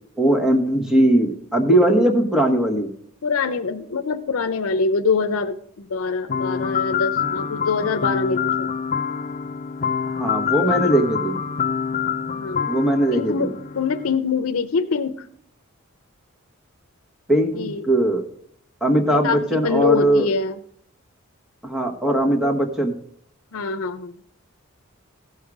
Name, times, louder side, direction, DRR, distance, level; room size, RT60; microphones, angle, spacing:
voice 1, 0.2-2.9 10.2-11.3 12.7-13.5 17.3-18.2 18.8-20.3 21.6-22.9, right 1 dB, 5° right, 2 dB, 1.3 m, -19 dB
voice 2, 3.2-8.7 10.6-10.9 12.4-12.7 13.1-15.3 17.5-17.9 19.1-20.6 23.5-24.3, left 4 dB, 85° left, 8 dB, 0.6 m, -24 dB
sound 1, 6.3-14.2, left 7 dB, 35° left, 0.4 m, -26 dB
16.0 x 5.6 x 4.8 m, 0.66 s
head